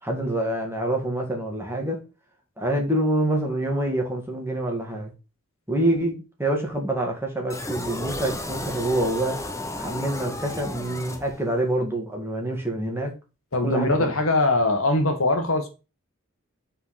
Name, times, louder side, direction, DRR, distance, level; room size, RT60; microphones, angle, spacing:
voice 1, 0.0-2.0 2.6-5.1 5.7-9.4 9.8-13.1 13.6-14.1, right 1 dB, 10° right, 1.9 m, -26 dB
sound 1, 7.5-11.7, left 1 dB, 15° left, 1.0 m, -33 dB
voice 2, 13.5-15.7, left 2 dB, 75° left, 1.7 m, -22 dB
5.5 x 4.7 x 5.7 m
head